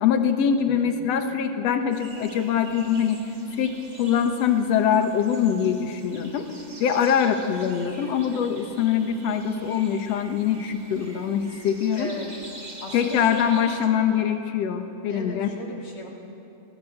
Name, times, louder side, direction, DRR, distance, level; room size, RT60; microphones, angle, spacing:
voice 1, 0.0-3.2 3.6-6.5 6.8-12.1 12.9-15.5, left 8 dB, 60° left, 7 dB, 2.3 m, -23 dB
voice 2, 0.6-0.9 11.9-12.3 12.8-13.7 15.1-16.1, left 2 dB, 45° left, 0 dB, 3.3 m, -37 dB
sound 1, 1.9-13.9, right 2 dB, 25° right, 1.0 m, -45 dB
23.5 x 18.0 x 7.8 m, 2.8 s
omnidirectional pair, 3.5 m